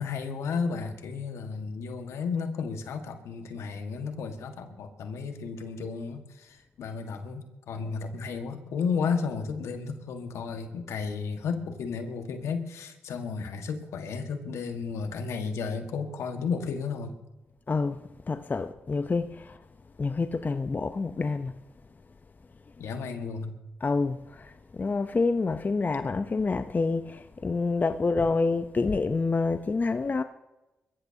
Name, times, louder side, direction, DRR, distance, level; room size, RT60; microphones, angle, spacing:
voice 1, 0.0-17.1 22.8-23.6, left 5 dB, 80° left, 1.7 m, -33 dB
voice 2, 17.7-19.6 20.0-21.5 23.8-30.2, left 4 dB, 35° left, 0.7 m, -28 dB
22.0 x 14.0 x 2.9 m
supercardioid pair, 50°, 5 cm